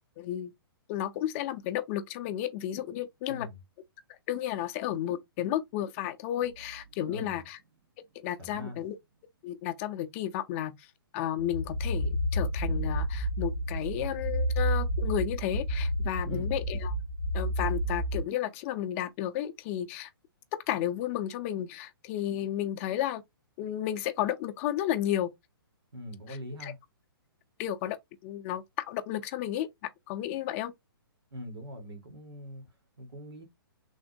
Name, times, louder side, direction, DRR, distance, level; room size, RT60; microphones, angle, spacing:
voice 1, 0.2-0.5 0.9-3.5 4.3-7.6 8.2-9.0 9.4-10.9 11.1-16.9 17.3-20.1 20.7-23.2 23.6-25.3 26.6-26.7 27.6-28.0 28.2-29.7 30.1-30.7, left 12 dB, 35° left, 0.4 m, -32 dB
voice 2, 3.3-3.6 7.1-7.4 8.4-8.8 16.2-16.5 25.9-26.8 31.3-33.4, equal, 85° right, 1.5 m, -42 dB
sound 1, 6.4-7.7 8.1-8.2 12.5-17.2, right 5 dB, 50° right, 0.5 m, -43 dB
sound 2, 11.4-18.2, equal, 80° left, 0.6 m, -30 dB
3.5 x 2.1 x 2.6 m
hypercardioid pair, 130°, 13 cm